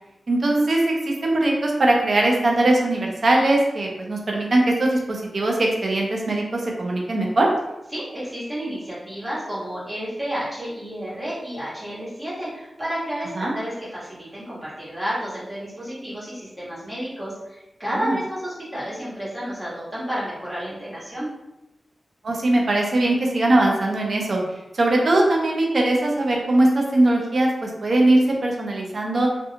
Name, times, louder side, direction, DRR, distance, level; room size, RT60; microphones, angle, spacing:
voice 1, 0.3-7.5 13.4-13.5 17.9-18.1 22.2-24.4 24.7-29.3, right 2 dB, 60° right, -1 dB, 0.6 m, -20 dB
voice 2, 7.9-21.3, equal, 20° right, -9 dB, 1.4 m, -31 dB
2.4 x 2.3 x 2.8 m, 0.94 s
wide cardioid pair, 70°, 0 cm